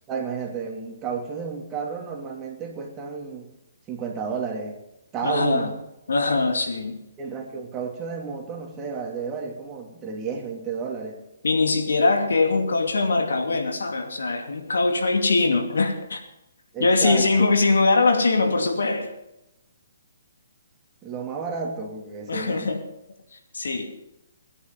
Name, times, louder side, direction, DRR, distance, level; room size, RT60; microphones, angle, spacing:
voice 1, 0.1-3.5 3.9-4.8 5.1-5.8 7.2-11.2 16.7-17.5 21.0-22.7, right 5 dB, 20° right, 1 dB, 2.8 m, -31 dB
voice 2, 5.2-5.7 6.1-7.0 11.4-16.2 16.8-19.1 22.3-22.8 23.3-23.9, left 3 dB, 85° left, 5 dB, 2.6 m, -22 dB
20.0 x 10.0 x 5.4 m, 0.90 s
hypercardioid pair, 150°, 0 cm